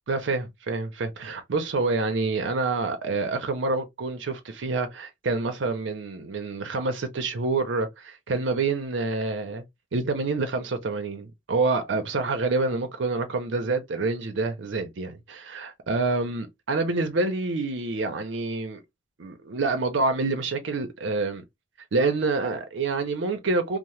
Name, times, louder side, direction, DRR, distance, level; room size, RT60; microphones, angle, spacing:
voice 1, 0.1-9.6 9.9-18.8 19.2-21.4 21.9-23.8, right 3 dB, 75° right, 0.6 m, -27 dB
2.8 x 2.0 x 3.1 m
head